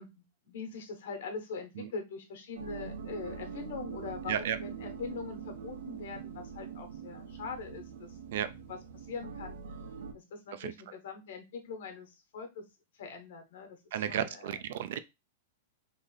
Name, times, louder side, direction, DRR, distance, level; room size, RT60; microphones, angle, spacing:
voice 1, 0.0-8.2 8.7-8.8 9.1-9.6 10.1-12.7 13.0-14.6, left 5 dB, 65° left, 1.2 m, -42 dB
sound 1, 2.6-10.1, right 6 dB, 85° right, 1.0 m, -43 dB
voice 2, 13.9-15.0, right 9 dB, 60° right, 0.4 m, -33 dB
3.3 x 2.6 x 4.0 m
supercardioid pair, 160°, 0 cm